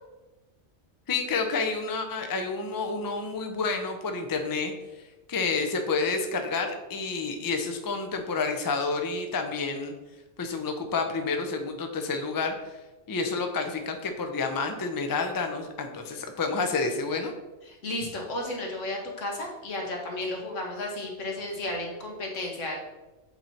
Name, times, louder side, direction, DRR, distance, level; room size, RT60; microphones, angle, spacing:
voice 1, 1.1-4.7 5.3-9.9 10.4-12.8 13.1-17.3, left 4 dB, 30° left, 5 dB, 0.4 m, -29 dB
voice 2, 17.7-22.8, left 1 dB, 85° left, 0 dB, 1.5 m, -33 dB
7.9 x 2.8 x 4.4 m, 1.1 s
omnidirectional pair, 1.3 m